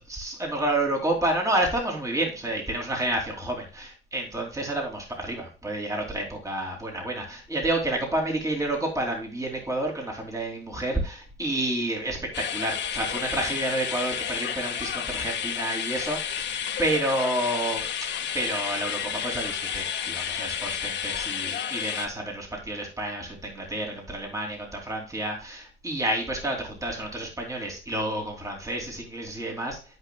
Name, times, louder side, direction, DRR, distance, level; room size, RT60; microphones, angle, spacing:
voice 1, 0.1-12.2 12.5-17.8 18.3-29.8, right 1 dB, 15° right, 0 dB, 2.8 m, -29 dB
sound 1, 12.3-22.1, left 8 dB, 65° left, 1.4 m, -31 dB
12.5 x 5.4 x 2.2 m, 0.35 s
cardioid pair, 90°, 20 cm